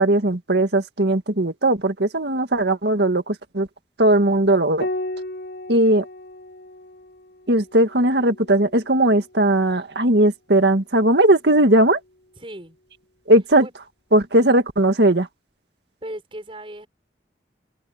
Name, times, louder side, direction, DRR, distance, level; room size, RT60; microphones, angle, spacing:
voice 1, 0.0-3.7 4.0-4.9 5.7-6.0 7.5-12.0 13.3-13.7 14.1-15.3, right 1 dB, 70° right, 1.9 m, -18 dB
voice 2, 2.2-2.7 12.4-12.8 13.6-13.7 16.0-16.9, right 1 dB, 30° right, 5.9 m, -37 dB
Piano, 4.8-9.7 11.3-12.1, left 1 dB, 70° left, 4.0 m, -35 dB
open air
head